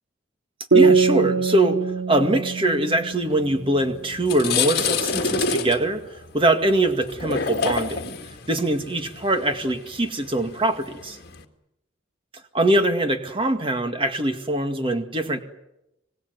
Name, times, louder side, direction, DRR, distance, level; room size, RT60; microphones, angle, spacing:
voice 1, 0.7-1.8 2.1-8.0 8.5-11.2 12.5-15.4, right 1 dB, 25° right, 7 dB, 2.1 m, -23 dB
sound 1, 0.7-4.2, right 4 dB, 75° right, 3.6 m, -22 dB
sound 2, 3.6-3.8 4.1-11.4, left 5 dB, 50° left, 2.0 m, -28 dB
25.5 x 19.0 x 9.3 m, 0.89 s
head